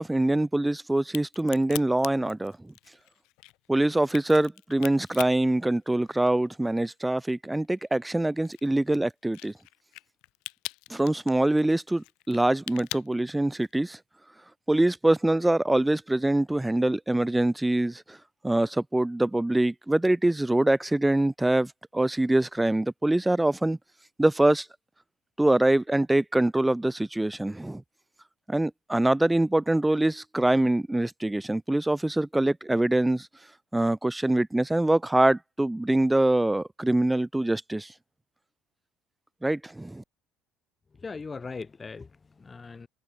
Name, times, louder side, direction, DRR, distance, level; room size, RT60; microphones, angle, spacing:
voice 1, 0.0-2.7 3.7-9.5 10.9-14.0 14.7-18.2 18.4-23.8 24.2-24.7 25.4-27.8 28.5-33.3 33.7-37.9 39.4-40.0, right 1 dB, 5° right, 0.4 m, -24 dB
Crack, 1.0-6.5 6.8-13.9, left 22 dB, 80° left, 1.0 m, -42 dB
voice 2, 40.9-42.9, left 4 dB, 20° left, 2.8 m, -40 dB
cardioid pair, 150°, 0 cm